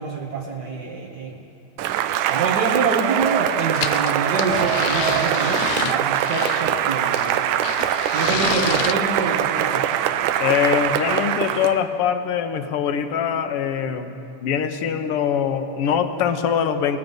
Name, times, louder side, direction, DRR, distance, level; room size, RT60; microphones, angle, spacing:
voice 1, 0.0-1.4 2.3-7.4 8.1-10.0, right 4 dB, 55° right, -1 dB, 1.1 m, -26 dB
Cheering / Applause, 1.8-11.8, right 11 dB, 85° right, 2.2 m, -22 dB
sound 1, 3.7-6.8 7.1-8.9, left 11 dB, 80° left, 1.8 m, -29 dB
voice 2, 10.4-14.1 14.4-17.0, left 8 dB, 60° left, 8 dB, 1.7 m, -23 dB
29.5 x 18.0 x 5.4 m, 3.0 s
omnidirectional pair, 3.4 m